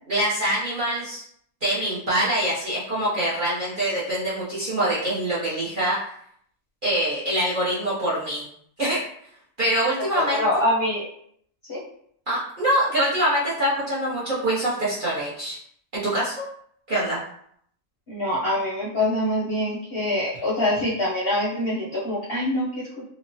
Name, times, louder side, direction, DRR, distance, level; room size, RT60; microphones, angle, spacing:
voice 1, 0.1-1.2 1.6-6.0 6.8-8.5 8.8-9.0 9.6-10.4 12.3-15.6 15.9-16.5 16.9-17.2, right 1 dB, 45° right, -9 dB, 0.7 m, -24 dB
voice 2, 10.0-11.0 11.7-11.8 18.1-23.0, left 1 dB, 55° left, -8 dB, 0.7 m, -25 dB
2.9 x 2.1 x 2.6 m, 0.66 s
omnidirectional pair, 1.6 m